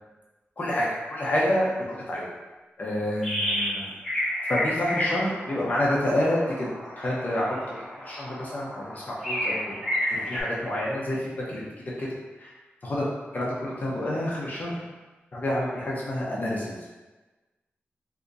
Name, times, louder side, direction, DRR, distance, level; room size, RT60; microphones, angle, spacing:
voice 1, 0.6-2.2 2.8-3.9 4.5-6.7 6.9-7.6 8.0-9.6 10.1-11.7 12.0-12.1 12.4-12.5 12.8-13.1 13.3-14.8 15.3-16.9, left 1 dB, 45° left, -5 dB, 0.7 m, -28 dB
sound 1, 3.2-3.8 4.0-10.4, left 1 dB, ahead, 1.4 m, -31 dB
3.9 x 2.8 x 2.4 m, 1.2 s
wide cardioid pair, 115°, 4 cm